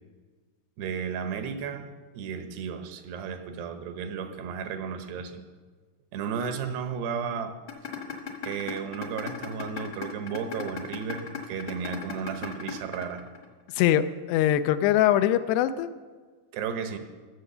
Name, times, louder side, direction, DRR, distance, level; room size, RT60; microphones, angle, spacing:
voice 1, 0.8-5.4 6.1-7.6 8.4-13.2 16.5-17.0, right 6 dB, 80° right, 7 dB, 3.0 m, -34 dB
sound 1, 7.7-13.7, left 8 dB, 55° left, 1.4 m, -36 dB
voice 2, 13.7-15.9, left 12 dB, 85° left, 11 dB, 2.7 m, -22 dB
18.0 x 7.4 x 6.8 m, 1.5 s
omnidirectional pair, 4.7 m